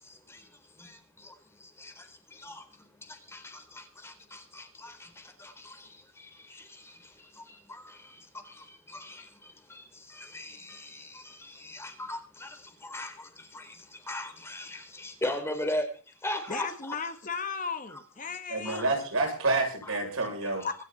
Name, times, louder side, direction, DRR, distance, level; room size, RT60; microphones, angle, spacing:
voice 1, 0.0-17.1 17.9-18.0 18.6-18.8 19.8-20.0 20.4-20.7, left 1 dB, 10° left, 4.1 m, -40 dB
voice 2, 16.5-18.8 20.6-20.7, left 5 dB, 40° left, 1.7 m, -35 dB
voice 3, 18.5-20.7, right 2 dB, 80° right, 7.5 m, -28 dB
26.5 x 9.3 x 4.3 m
head